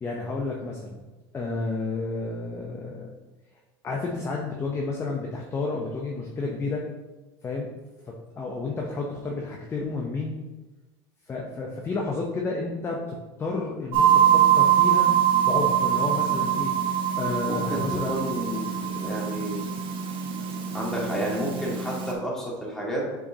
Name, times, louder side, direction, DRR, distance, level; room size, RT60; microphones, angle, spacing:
voice 1, 0.0-1.0 1.3-3.1 3.8-6.8 7.4-7.7 8.0-10.3 11.3-15.2 15.4-16.7 17.2-18.1, left 3 dB, 20° left, -1 dB, 0.8 m, -31 dB
sound 1, 13.9-22.1, right 10 dB, 45° right, 1.0 m, -23 dB
voice 2, 17.2-19.6 20.7-23.1, equal, 5° left, -5 dB, 2.0 m, -31 dB
7.1 x 4.8 x 2.8 m, 1.2 s
supercardioid pair, 125°, 12 cm